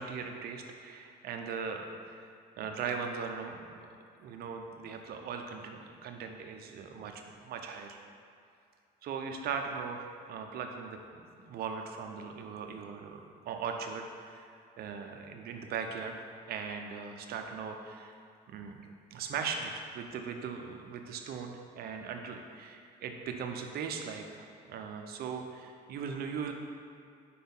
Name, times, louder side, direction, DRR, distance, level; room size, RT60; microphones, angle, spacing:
voice 1, 0.0-2.3 2.6-3.9 4.2-8.0 9.0-14.5 14.8-18.1 18.5-18.8 19.1-26.5, right 6 dB, 65° right, 4 dB, 0.7 m, -39 dB
5.0 x 4.3 x 5.4 m, 2.4 s
cardioid pair, 110°, 17 cm